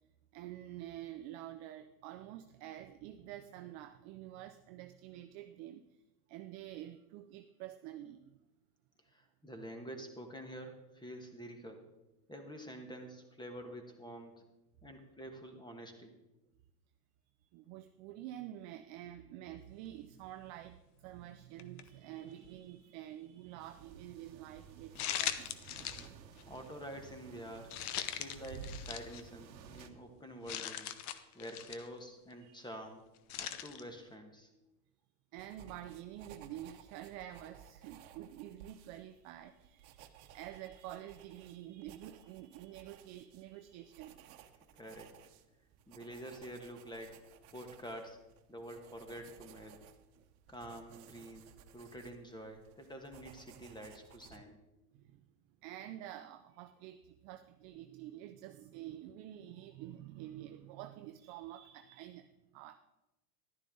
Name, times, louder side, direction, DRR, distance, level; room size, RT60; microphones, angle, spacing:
voice 1, 0.3-6.0 6.3-8.4 17.4-25.4 29.9-30.0 32.4-32.6 33.4-33.6 35.3-44.2 54.9-55.3 55.6-62.8, right 12 dB, 35° right, 8 dB, 0.4 m, -48 dB
voice 2, 9.1-11.8 12.3-14.4 14.8-16.1 26.4-27.7 28.1-30.9 31.3-33.0 33.4-34.5 44.8-45.1 45.9-47.2 47.5-48.2 48.5-49.8 50.5-54.6, equal, 10° left, 5 dB, 1.5 m, -48 dB
sound 1, 21.6-21.9 22.4-22.5 24.9-26.1 26.4-26.6 27.7-29.2 29.8-29.9 30.5-31.9 33.3-33.8, left 11 dB, 60° left, 1.0 m, -40 dB
sound 2, 23.6-29.9, right 6 dB, 85° right, 1.0 m, -52 dB
sound 3, 35.4-54.4, right 9 dB, 60° right, 1.1 m, -59 dB
12.0 x 10.5 x 3.9 m, 0.97 s
hypercardioid pair, 115°, 50 cm